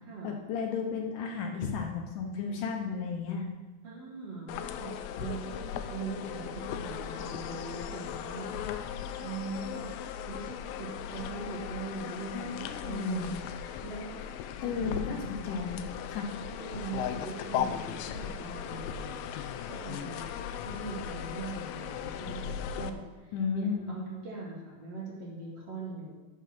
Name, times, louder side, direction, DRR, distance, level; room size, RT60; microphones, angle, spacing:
voice 1, 0.2-3.5 12.3-13.3 14.6-16.3 23.3-24.0, left 5 dB, 70° left, 2 dB, 2.4 m, -34 dB
voice 2, 3.8-4.9 5.2-9.9 10.2-13.3 13.8-14.2 14.6-15.3 16.5-19.3 19.7-20.3 20.6-26.1, right 4 dB, 50° right, -3 dB, 2.6 m, -41 dB
sound 1, 4.5-22.9, left 9 dB, 85° left, 2.4 m, -37 dB
11.5 x 6.5 x 6.0 m, 1.3 s
omnidirectional pair, 4.1 m